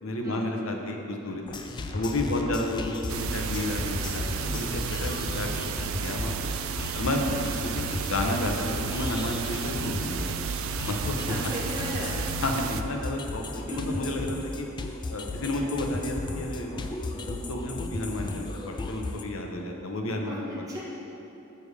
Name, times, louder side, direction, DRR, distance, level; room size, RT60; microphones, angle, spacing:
voice 1, 0.0-1.4 1.9-6.5 6.9-7.5 7.9-10.3 10.9-11.2 12.4-13.4 13.7-14.7 15.1-16.8 17.1-20.4, left 1 dB, 90° left, 2 dB, 0.9 m, -31 dB
sound 1, 1.5-19.2, left 2 dB, 20° left, 0.4 m, -35 dB
sound 2, 3.1-12.8, right 6 dB, 90° right, 0.4 m, -33 dB
voice 2, 11.0-12.1 13.5-14.0 20.3-20.8, equal, 15° right, -7 dB, 1.6 m, -36 dB
6.9 x 4.8 x 6.8 m, 3.0 s
head